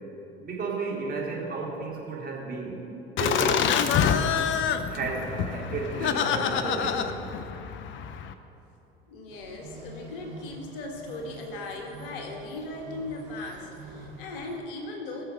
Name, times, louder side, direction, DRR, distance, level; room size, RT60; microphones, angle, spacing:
voice 1, 0.4-2.8 3.2-4.1 4.9-7.1, right 4 dB, 30° right, -4 dB, 3.5 m, -33 dB
Laughter, 3.2-8.3, left 7 dB, 40° left, 0.8 m, -26 dB
voice 2, 9.1-15.2, left 2 dB, 65° left, 2 dB, 1.8 m, -38 dB
sound 1, 9.3-14.6, right 2 dB, 65° right, 1.9 m, -46 dB
20.5 x 6.9 x 5.8 m, 2.9 s
figure-of-eight pair, 65°, 29 cm